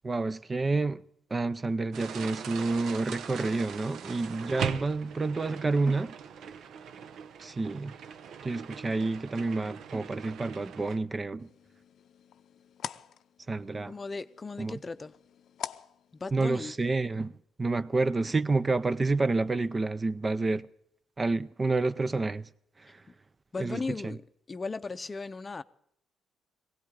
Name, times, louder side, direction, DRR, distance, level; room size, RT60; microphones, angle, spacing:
voice 1, 0.0-1.0 1.3-6.2 7.4-7.9 8.4-11.5 13.5-13.9 14.6-14.8 16.3-20.7 21.2-22.5 22.8-23.0 23.6-24.2, right 3 dB, 25° right, 0.5 m, -29 dB
sound 1, 1.9-11.0, right 7 dB, 75° right, 0.8 m, -40 dB
sound 2, 11.4-16.8, left 9 dB, 70° left, 0.6 m, -46 dB
voice 2, 13.9-15.1 16.2-16.7 23.5-25.6, left 3 dB, 30° left, 0.6 m, -36 dB
19.5 x 17.0 x 3.8 m
cardioid pair, 90°, 0 cm